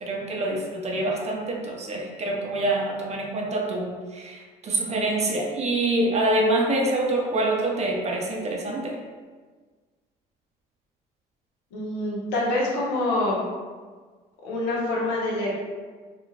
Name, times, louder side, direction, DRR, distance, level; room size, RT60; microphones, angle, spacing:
voice 1, 0.0-9.0, right 2 dB, 40° right, 0 dB, 0.6 m, -26 dB
voice 2, 11.7-13.4 14.4-15.6, left 2 dB, 85° left, -5 dB, 0.8 m, -26 dB
2.4 x 2.3 x 3.1 m, 1.4 s
supercardioid pair, 75°, 18 cm